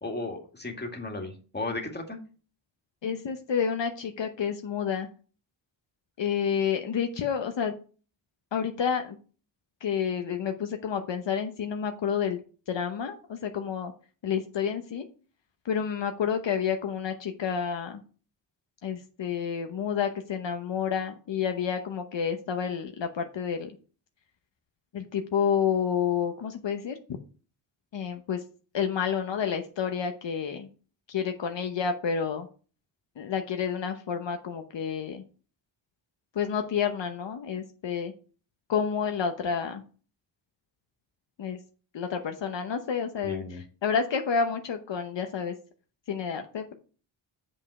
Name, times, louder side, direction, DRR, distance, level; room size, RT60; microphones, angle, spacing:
voice 1, 0.0-2.2 43.2-43.6, left 2 dB, 20° left, 2 dB, 2.3 m, -35 dB
voice 2, 3.0-5.1 6.2-7.7 8.5-9.2 9.8-12.4 12.7-13.9 14.2-15.0 15.6-18.0 18.8-23.7 24.9-27.0 27.9-28.4 28.7-30.7 31.1-32.5 33.2-35.2 36.3-38.1 38.7-39.8 41.4-41.6 41.9-45.5 46.1-46.7, left 7 dB, 65° left, 6 dB, 1.0 m, -29 dB
7.4 x 5.5 x 4.8 m, 0.38 s
cardioid pair, 75°, 47 cm